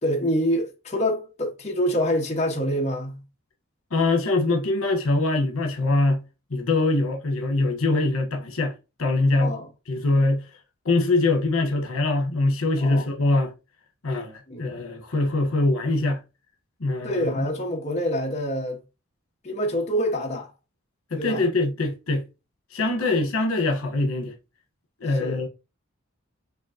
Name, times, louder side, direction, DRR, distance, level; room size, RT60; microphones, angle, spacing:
voice 1, 0.0-3.2 9.4-9.7 12.8-13.1 14.5-14.7 17.0-18.8 19.4-20.5 21.2-21.4 23.0-23.1 25.2-25.4, equal, 30° left, 1.4 m, -26 dB
voice 2, 3.9-6.2 6.5-8.7 9.0-9.6 9.9-10.5 10.8-13.5 14.0-16.2 16.8-17.4 21.1-22.3 22.7-24.3 25.0-25.5, left 2 dB, 80° left, 1.2 m, -23 dB
6.2 x 3.0 x 2.8 m
head